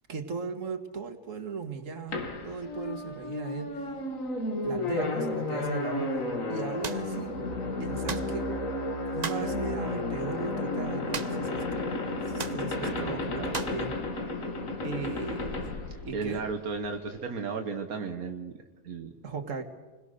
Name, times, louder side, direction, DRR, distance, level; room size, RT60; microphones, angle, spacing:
voice 1, 0.1-3.9 4.6-6.2 6.5-7.4 7.8-8.5 9.1-13.9 14.8-15.8 16.0-16.4 19.2-19.6, right 4 dB, 60° right, 6 dB, 2.1 m, -37 dB
sound 1, 2.1-16.7, left 2 dB, 65° left, 2.4 m, -32 dB
sound 2, 6.8-7.1 8.1-8.3 9.2-9.5 11.1-11.5 11.8-11.9 12.4-12.6 13.5-13.8, right 5 dB, 35° right, 0.9 m, -36 dB
voice 2, 12.8-13.6 16.1-18.5 18.8-19.1, right 4 dB, 85° right, 5 dB, 1.7 m, -34 dB
28.0 x 21.5 x 6.7 m, 1.2 s
omnidirectional pair, 1.5 m